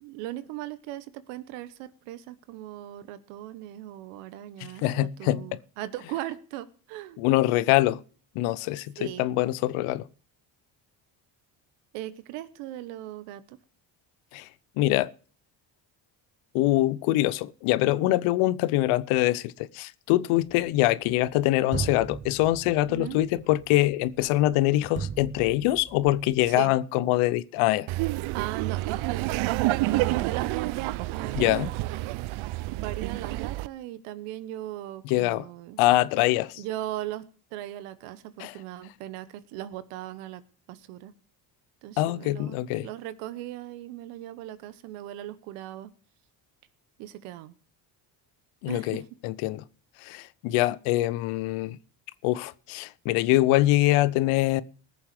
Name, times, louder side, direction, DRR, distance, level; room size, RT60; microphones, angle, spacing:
voice 1, 0.0-7.2 9.0-9.3 11.9-13.6 22.9-23.2 26.5-26.7 28.3-29.3 29.8-30.8 31.0-31.8 32.8-35.8 36.6-40.4 40.7-41.1 41.8-45.9 47.0-47.5 48.7-49.0, right 14 dB, 85° right, 1.2 m, -38 dB
voice 2, 4.6-5.6 7.2-8.0 8.3-10.1 14.3-14.5 14.8-15.1 16.5-27.9 31.3-31.7 35.0-35.5 35.8-36.6 38.4-38.5 42.0-42.9 48.6-49.6 50.0-51.8 52.2-54.6, left 16 dB, 80° left, 0.8 m, -24 dB
sound 1, 20.4-21.3 21.7-26.6, right 6 dB, 25° right, 0.9 m, -38 dB
Laughter, 27.9-33.7, right 18 dB, 70° right, 0.6 m, -28 dB
19.5 x 7.1 x 4.9 m
supercardioid pair, 65°, 50 cm